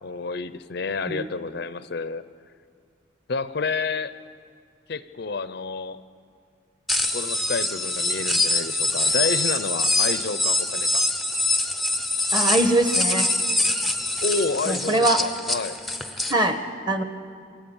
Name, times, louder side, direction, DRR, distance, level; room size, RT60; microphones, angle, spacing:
voice 1, 0.0-2.2 3.3-4.1 4.9-6.0 7.1-11.0 14.2-15.8, left 4 dB, 55° left, 13 dB, 0.6 m, -29 dB
sound 1, 6.9-16.3, left 2 dB, ahead, 0.6 m, -24 dB
voice 2, 12.3-13.3 14.7-15.2 16.3-16.6 16.9-17.0, right 1 dB, 20° right, 7 dB, 1.2 m, -22 dB
27.5 x 17.0 x 7.1 m, 2.3 s
head